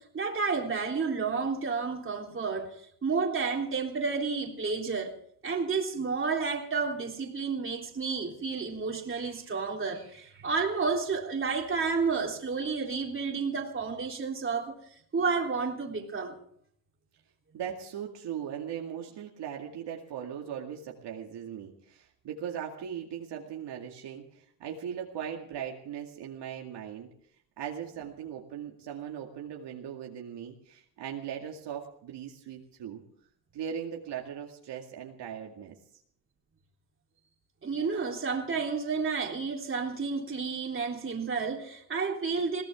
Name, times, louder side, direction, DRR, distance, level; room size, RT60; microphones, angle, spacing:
voice 1, 0.0-2.7 3.0-5.1 5.4-14.7 15.1-16.3 37.6-42.6, right 4 dB, 25° right, 1 dB, 3.5 m, -31 dB
voice 2, 17.5-27.1 27.6-33.0 33.5-35.8, right 8 dB, 60° right, 0 dB, 2.3 m, -39 dB
22.0 x 17.5 x 3.7 m, 0.64 s
cardioid pair, 135°, 48 cm